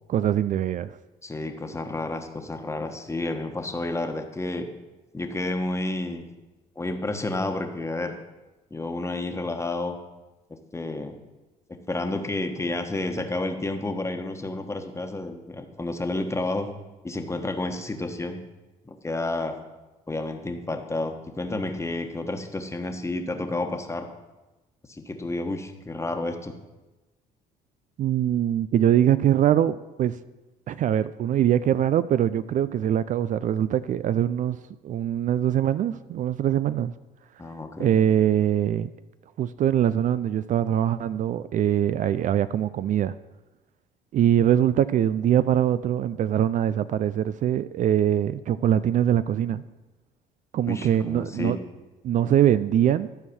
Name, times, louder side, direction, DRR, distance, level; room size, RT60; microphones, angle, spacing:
voice 1, 0.1-1.0 28.0-30.2 30.7-34.6 34.8-36.9 37.8-38.9 39.4-43.1 44.1-49.6 50.5-51.6 52.0-53.1, right 10 dB, 50° right, 0.4 m, -23 dB
voice 2, 1.2-4.7 5.1-6.2 6.8-8.1 8.7-10.0 10.7-11.2 11.7-16.7 17.0-18.4 18.8-19.6 20.1-24.1 24.9-26.5 37.4-38.0 50.7-51.6, left 2 dB, 15° left, 1.3 m, -30 dB
12.5 x 4.7 x 7.0 m
supercardioid pair, 80°, 16 cm